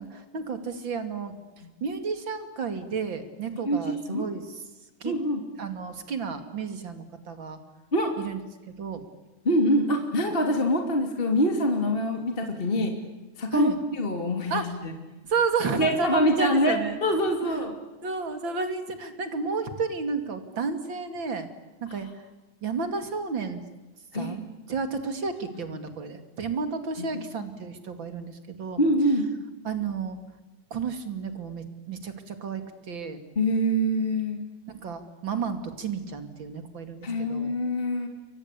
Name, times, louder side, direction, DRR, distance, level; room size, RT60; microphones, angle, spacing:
voice 1, 0.0-1.3 1.8-4.6 5.0-5.1 5.6-7.6 8.2-8.4 8.8-9.0 13.5-13.8 14.5-14.8 15.3-17.0 17.4-17.7 18.0-21.5 21.8-22.1 22.6-23.6 24.1-28.8 29.6-30.2 30.7-33.2 34.7-37.5, right 5 dB, 40° right, 7 dB, 3.0 m, -32 dB
voice 2, 3.7-4.2 5.0-5.4 7.9-8.1 9.4-12.9 13.4-14.9 15.8-17.8 24.1-24.4 27.0-27.2 28.8-29.3 33.4-34.4 37.0-38.1, equal, 20° left, 3 dB, 2.6 m, -25 dB
29.5 x 23.5 x 8.5 m, 1.1 s
omnidirectional pair, 3.6 m